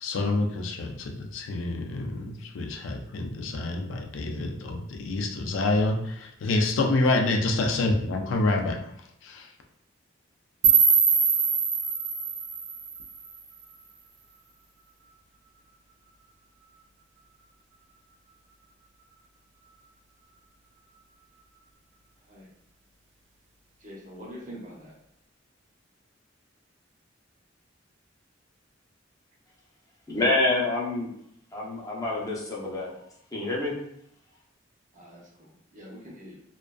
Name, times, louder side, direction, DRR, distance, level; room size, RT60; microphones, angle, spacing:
voice 1, 0.0-8.8 9.2-9.5, left 2 dB, 80° left, 3 dB, 0.4 m, -27 dB
sound 1, 10.6-13.6, right 6 dB, 65° right, 0.3 m, -23 dB
voice 2, 23.8-25.0 34.9-36.4, equal, 40° right, -5 dB, 0.8 m, -44 dB
voice 3, 30.1-31.1 31.5-32.9 33.3-33.8, left 2 dB, 20° left, -4 dB, 0.6 m, -27 dB
2.4 x 2.2 x 2.2 m, 0.72 s
head